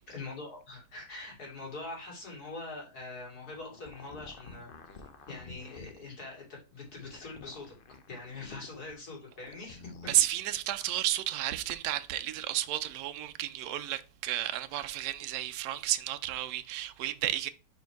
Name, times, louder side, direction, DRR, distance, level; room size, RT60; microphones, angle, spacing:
voice 1, 0.1-4.7 5.3-7.7 8.1-10.1, left 3 dB, 70° left, 3.1 m, -43 dB
sound 1, 3.3-6.1 6.8-8.9 9.3-10.2, left 4 dB, 50° left, 0.6 m, -50 dB
voice 2, 10.1-17.5, right 13 dB, 75° right, 1.1 m, -32 dB
5.2 x 4.7 x 4.6 m
omnidirectional pair, 1.7 m